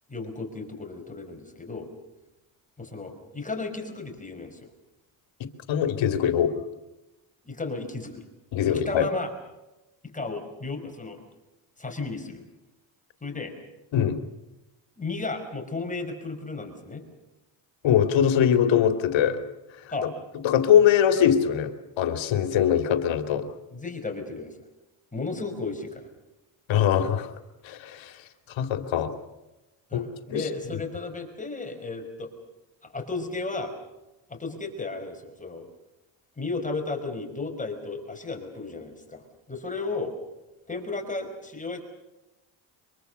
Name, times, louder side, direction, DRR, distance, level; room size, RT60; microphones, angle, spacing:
voice 1, 0.1-1.9 2.8-4.7 7.5-8.2 8.7-9.3 10.1-11.2 11.8-12.4 13.2-13.5 15.0-17.0 19.9-20.1 23.7-24.5 25.1-26.1 29.9-32.3 32.8-33.7 34.3-35.6 36.4-40.1 40.7-41.8, left 3 dB, 15° left, 4 dB, 5.2 m, -34 dB
voice 2, 5.7-6.6 8.5-9.1 13.9-14.2 17.8-19.4 20.4-23.5 26.7-27.3 27.6-28.2 28.6-29.1 29.9-30.4, left 9 dB, 70° left, 8 dB, 2.5 m, -22 dB
24.5 x 23.0 x 6.8 m, 0.99 s
cardioid pair, 90°, 47 cm